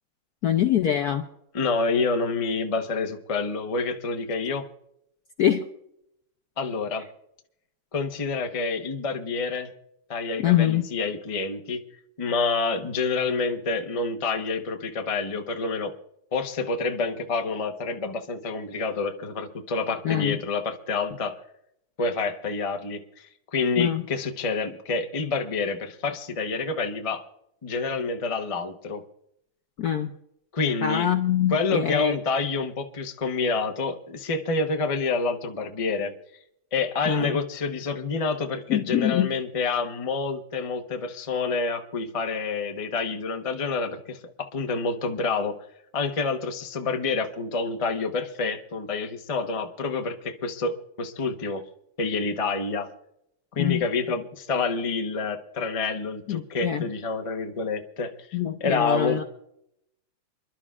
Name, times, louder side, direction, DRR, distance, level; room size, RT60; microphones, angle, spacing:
voice 1, 0.4-1.3 5.4-5.6 10.4-10.8 20.0-20.4 23.8-24.0 29.8-30.1 30.8-32.2 37.1-37.4 38.7-39.3 53.6-53.8 56.3-56.8 58.3-59.2, left 10 dB, 70° left, 6 dB, 0.9 m, -24 dB
voice 2, 1.5-4.7 6.6-7.1 7.9-9.7 10.1-11.8 12.2-15.9 16.3-21.4 22.0-27.2 27.6-29.0 30.5-31.1 31.5-36.1 36.7-45.6 45.9-51.6 52.0-52.9 53.5-59.2, left 4 dB, 35° left, 5 dB, 0.5 m, -28 dB
28.0 x 11.5 x 2.4 m, 0.75 s
omnidirectional pair, 2.4 m